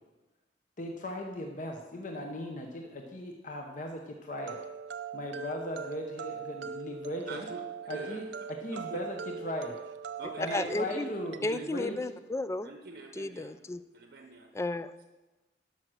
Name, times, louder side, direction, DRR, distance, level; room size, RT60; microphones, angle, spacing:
voice 1, 0.8-4.6 5.1-7.5 7.9-9.8 10.3-12.0, left 1 dB, 45° left, 2 dB, 0.9 m, -38 dB
sound 1, 4.4-11.4, right 6 dB, 90° right, 0.6 m, -41 dB
voice 2, 7.3-8.3 8.7-9.0 10.2-10.8 11.4-12.0 12.6-13.5 13.9-14.5, right 2 dB, 65° right, 4 dB, 0.9 m, -46 dB
voice 3, 10.2-11.1 11.4-12.7 13.1-13.8 14.5-14.9, left 2 dB, 15° left, 14 dB, 0.3 m, -33 dB
11.5 x 6.2 x 6.2 m, 1.1 s
head